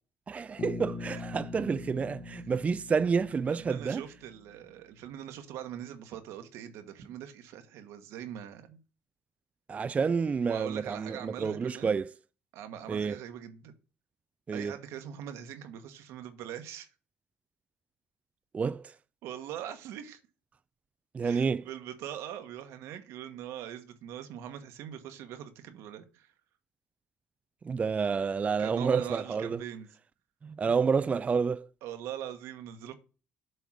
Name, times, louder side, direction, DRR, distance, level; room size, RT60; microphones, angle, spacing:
voice 1, 0.3-4.0 9.7-12.1 12.9-13.2 14.5-14.8 18.5-18.9 21.1-21.6 27.6-29.6 30.4-31.7, right 5 dB, 30° right, 0.3 m, -29 dB
Bass guitar, 0.6-4.5, left 4 dB, 50° left, 1.5 m, -42 dB
voice 2, 3.5-8.8 10.5-12.0 12.5-13.7 14.5-16.9 19.2-20.2 21.2-26.3 28.6-29.9 31.8-32.9, right 10 dB, 75° right, 1.3 m, -42 dB
7.8 x 3.5 x 6.2 m
supercardioid pair, 85°, 5 cm